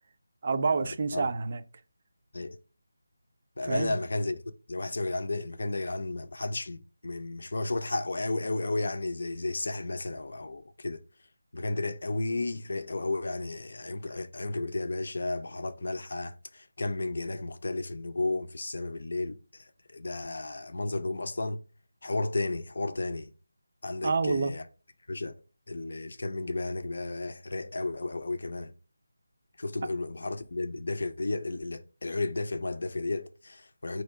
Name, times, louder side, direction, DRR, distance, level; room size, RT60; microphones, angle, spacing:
voice 1, 0.4-1.6 3.6-4.0 24.0-24.5, right 4 dB, 40° right, 0.4 m, -28 dB
voice 2, 3.6-4.4 4.7-11.0 11.5-21.6 22.0-23.3 23.8-24.6 25.1-25.3 25.7-28.7 29.6-34.0, left 2 dB, 60° left, 0.5 m, -33 dB
3.1 x 2.7 x 4.5 m
figure-of-eight pair, 160°, 0 cm